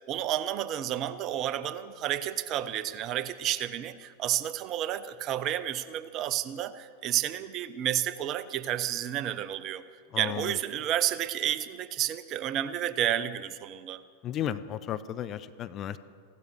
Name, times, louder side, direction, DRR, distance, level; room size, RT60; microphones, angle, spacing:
voice 1, 0.1-9.8 10.2-14.0, right 11 dB, 35° right, 14 dB, 0.6 m, -31 dB
voice 2, 10.1-10.5 14.2-16.0, left 10 dB, 30° left, 12 dB, 0.6 m, -34 dB
15.5 x 12.0 x 6.3 m, 2.1 s
figure-of-eight pair, 90°, 0 cm